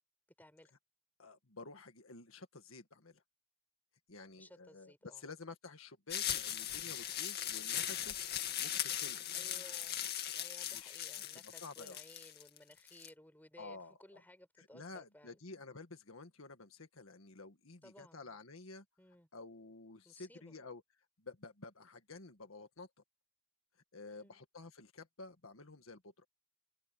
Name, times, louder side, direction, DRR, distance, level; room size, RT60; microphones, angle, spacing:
voice 1, 0.4-0.7 4.4-5.2 9.3-10.0 10.3-15.3 17.8-18.3 19.0-19.3 20.0-20.5 24.1-24.4, left 1 dB, 10° left, 4.8 m, -59 dB
voice 2, 1.2-3.2 4.1-8.1 8.6-9.8 10.7-11.0 11.4-12.0 13.6-14.2 14.6-18.9 19.3-20.8 21.2-22.9 23.9-26.2, left 3 dB, 75° left, 1.8 m, -51 dB
sound 1, 6.1-13.1, left 11 dB, 50° left, 2.2 m, -39 dB
open air
head